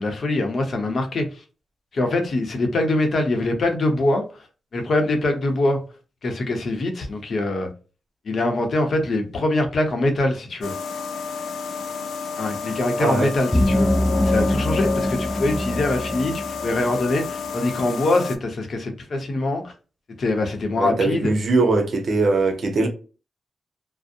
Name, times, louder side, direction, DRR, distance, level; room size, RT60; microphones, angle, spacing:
voice 1, 0.0-1.4 1.9-4.5 4.7-5.8 6.2-7.7 8.2-10.7 12.4-13.9 14.2-19.7 20.2-21.3, left 2 dB, 55° left, 0.7 m, -23 dB
sound 1, 10.6-18.4, left 5 dB, 90° left, 0.3 m, -31 dB
voice 2, 13.0-13.3 20.8-22.9, right 3 dB, 60° right, 0.7 m, -21 dB
sound 2, 13.5-17.1, left 1 dB, 20° left, 0.4 m, -23 dB
2.6 x 2.0 x 2.4 m
cardioid pair, 95°, 0 cm